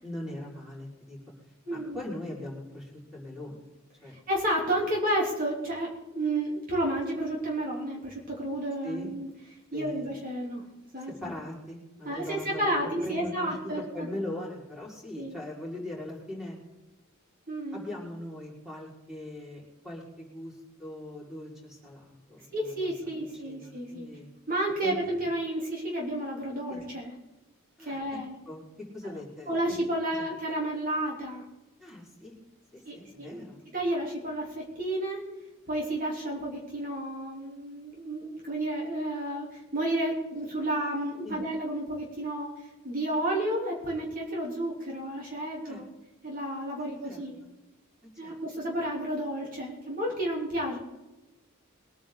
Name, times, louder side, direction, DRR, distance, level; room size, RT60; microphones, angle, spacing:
voice 1, 0.0-1.2 1.7-3.6 4.0-4.1 8.8-9.1 9.7-10.1 11.0-13.6 13.9-16.6 17.7-22.9 23.3-24.3 24.8-24.9 26.7-26.8 27.8-28.2 28.5-28.6 28.9-29.6 30.1-30.3 31.8-32.3 32.7-33.7 41.2-41.4 45.6-45.8 47.0-47.5 48.2-48.6, left 1 dB, ahead, -5 dB, 5.1 m, -40 dB
voice 2, 1.7-2.0 4.3-9.3 9.7-10.6 10.9-11.1 12.1-14.1 15.2-15.3 17.5-17.9 22.5-24.1 24.5-27.1 27.8-28.4 29.0-29.1 29.5-31.5 32.9-33.4 33.7-35.2 35.7-42.5 42.8-45.9 46.2-47.4 48.2-50.8, right 1 dB, 40° right, -3 dB, 3.5 m, -31 dB
22.5 x 10.0 x 4.0 m, 1.1 s
head